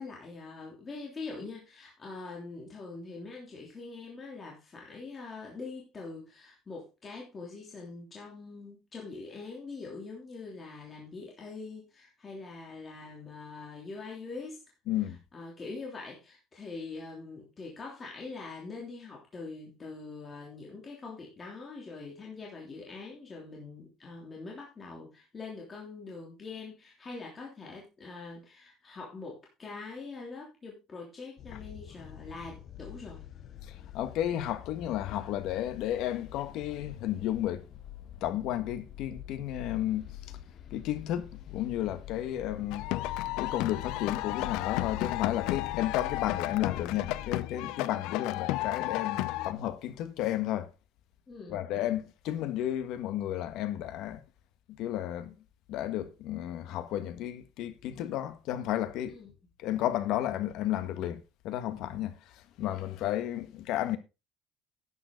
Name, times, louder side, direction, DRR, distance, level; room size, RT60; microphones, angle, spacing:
voice 1, 0.0-14.6 15.3-33.3 51.3-51.6 59.1-59.3, left 3 dB, 20° left, 3.1 m, -43 dB
sound 1, 31.4-47.5, left 12 dB, 40° left, 0.8 m, -45 dB
voice 2, 33.7-37.6 38.2-40.4 40.7-42.9 43.4-50.7 51.5-54.2 54.7-55.3 55.7-59.2 59.6-64.0, left 12 dB, 65° left, 1.5 m, -33 dB
sound 2, 42.7-49.5, left 17 dB, 80° left, 0.6 m, -33 dB
11.0 x 9.1 x 3.9 m
cardioid pair, 165°, 0 cm